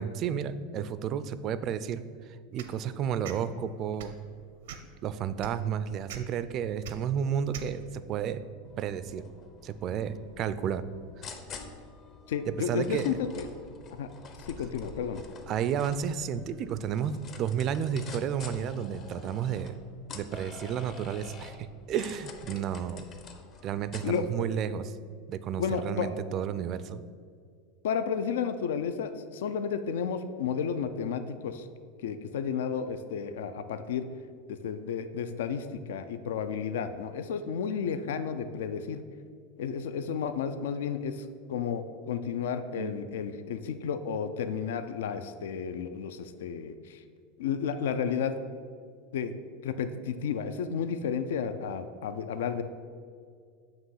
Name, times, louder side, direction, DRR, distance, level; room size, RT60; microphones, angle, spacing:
voice 1, 0.0-2.0 2.5-4.2 5.0-8.4 8.8-9.2 9.6-10.8 12.7-13.2 15.5-19.8 20.1-23.0 23.6-24.9 25.3-27.0 42.8-43.0, right 8 dB, 40° right, 13 dB, 0.3 m, -32 dB
sound 1, 2.6-2.7 3.2-3.4 3.9-4.2 4.6-4.9 5.4-5.5 6.1-6.2 6.8-6.9 7.5-7.7, right 9 dB, 80° right, 0.6 m, -41 dB
sound 2, 8.6-24.2, left 4 dB, 35° left, 0.6 m, -47 dB
voice 2, 12.3-13.5 14.0-14.1 14.5-15.2 24.0-24.2 25.6-26.2 27.8-31.7 32.0-34.0 34.5-39.0 39.6-47.0 47.4-48.3 49.1-49.3 49.6-52.6, left 7 dB, 85° left, 10 dB, 0.4 m, -32 dB
7.4 x 2.9 x 5.6 m, 2.1 s
supercardioid pair, 135°, 0 cm